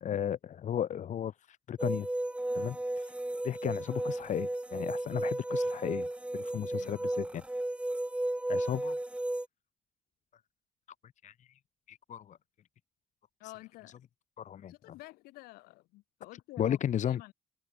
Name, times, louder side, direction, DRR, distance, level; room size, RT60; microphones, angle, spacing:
voice 1, 0.0-2.1 2.5-3.1 3.4-6.1 6.3-7.4 8.5-9.0 11.2-11.5 11.9-12.4 14.4-14.7 16.6-17.3, left 9 dB, 50° left, 0.6 m, -34 dB
sound 1, 1.8-9.5, right 1 dB, 5° right, 0.8 m, -34 dB
voice 2, 13.4-13.9 14.7-17.3, left 20 dB, 85° left, 4.2 m, -50 dB
hypercardioid pair, 55°, 15 cm